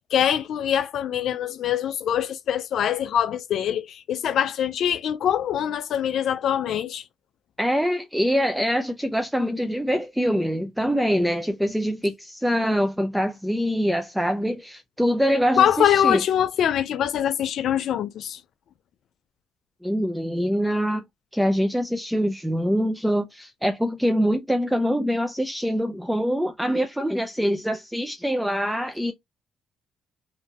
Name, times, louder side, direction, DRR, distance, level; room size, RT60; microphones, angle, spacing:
voice 1, 0.0-7.0 15.6-18.4, left 9 dB, 70° left, 0.3 m, -23 dB
voice 2, 7.6-16.2 19.8-21.0 21.3-29.1, equal, 5° right, 0.4 m, -24 dB
3.7 x 2.6 x 2.3 m
cardioid pair, 90°, 0 cm